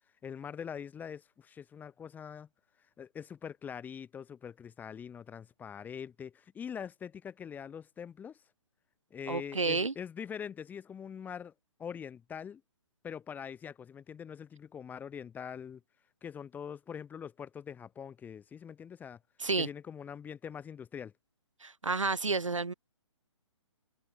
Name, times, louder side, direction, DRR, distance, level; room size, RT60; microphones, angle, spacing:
voice 1, 0.2-2.5 3.0-8.4 9.1-11.5 11.8-12.6 13.0-15.8 16.2-19.2 19.6-21.1, left 7 dB, 10° left, 2.7 m, -43 dB
voice 2, 9.3-9.9 19.4-19.7 21.6-22.7, right 3 dB, 75° right, 1.6 m, -30 dB
figure-of-eight pair, 130°, 16 cm